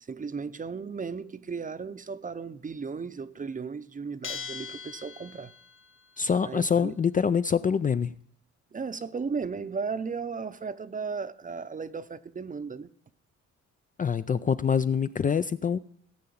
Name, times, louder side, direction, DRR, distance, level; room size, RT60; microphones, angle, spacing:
voice 1, 0.0-5.5 6.4-7.0 8.7-12.9, right 5 dB, 25° right, 0.7 m, -35 dB
Bell, 4.2-5.8, left 6 dB, 45° left, 1.1 m, -40 dB
voice 2, 6.2-8.1 14.0-15.8, left 6 dB, 25° left, 0.4 m, -25 dB
16.5 x 5.6 x 8.6 m
cardioid pair, 90°, 30 cm